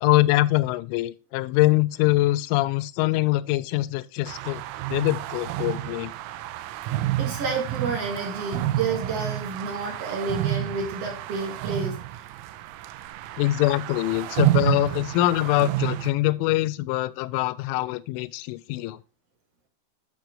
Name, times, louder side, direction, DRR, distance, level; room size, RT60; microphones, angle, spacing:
voice 1, 0.0-4.6 4.9-6.1 13.4-19.0, left 18 dB, 85° left, 3.0 m, -23 dB
sound 1, 4.3-16.1, right 14 dB, 90° right, 3.2 m, -29 dB
voice 2, 7.2-12.0, right 4 dB, 45° right, 2.4 m, -30 dB
10.5 x 6.5 x 3.1 m
omnidirectional pair, 5.5 m